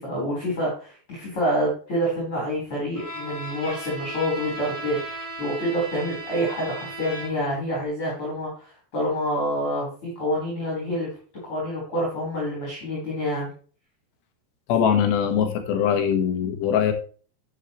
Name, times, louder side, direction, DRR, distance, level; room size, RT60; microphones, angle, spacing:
voice 1, 0.0-11.1 11.5-13.5, equal, 30° left, -4 dB, 5.0 m, -27 dB
Bowed string instrument, 2.9-7.6, right 2 dB, 10° right, 4.3 m, -36 dB
voice 2, 14.7-16.9, left 8 dB, 80° left, 6 dB, 3.6 m, -22 dB
10.5 x 8.7 x 3.2 m, 0.40 s
omnidirectional pair, 4.8 m